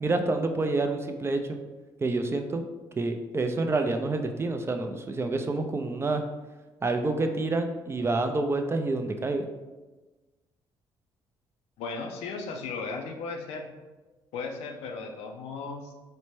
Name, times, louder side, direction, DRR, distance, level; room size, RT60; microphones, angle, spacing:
voice 1, 0.0-1.6 2.0-2.6 3.0-6.2 6.8-9.5, right 3 dB, 25° right, 6 dB, 0.3 m, -28 dB
voice 2, 11.8-13.7 14.3-15.9, left 4 dB, 90° left, 3 dB, 0.5 m, -36 dB
4.2 x 2.1 x 3.1 m, 1.2 s
cardioid pair, 85°, 10 cm